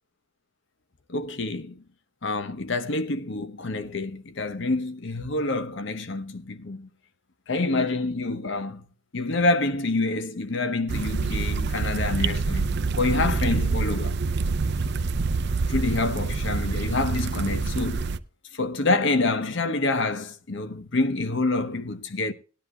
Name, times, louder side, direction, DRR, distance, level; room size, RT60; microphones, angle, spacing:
voice 1, 1.1-1.8 2.2-6.9 7.5-8.8 9.1-14.2 15.0-15.1 15.7-18.1 18.5-22.3, left 2 dB, 65° left, 1.0 m, -27 dB
sound 1, 10.9-18.2, right 4 dB, 55° right, 0.5 m, -26 dB
19.0 x 10.5 x 2.3 m
head